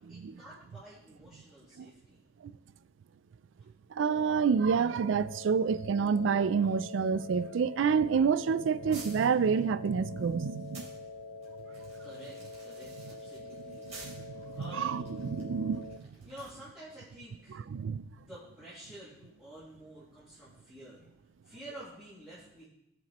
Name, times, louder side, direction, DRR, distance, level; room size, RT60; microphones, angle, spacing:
voice 1, 0.1-2.2 12.0-12.4 12.6-13.9 14.6-15.0 16.2-17.6 18.1-21.1 21.4-22.7, equal, 5° right, 2.4 m, -50 dB
voice 2, 3.9-10.9 13.0-13.1 13.7-16.0 17.7-18.1, right 6 dB, 75° right, 0.4 m, -28 dB
sound 1, 4.0-16.0, left 3 dB, 85° left, 0.6 m, -46 dB
sound 2, 8.9-10.9 11.4-16.6, right 3 dB, 35° right, 2.9 m, -52 dB
17.5 x 5.8 x 3.0 m
head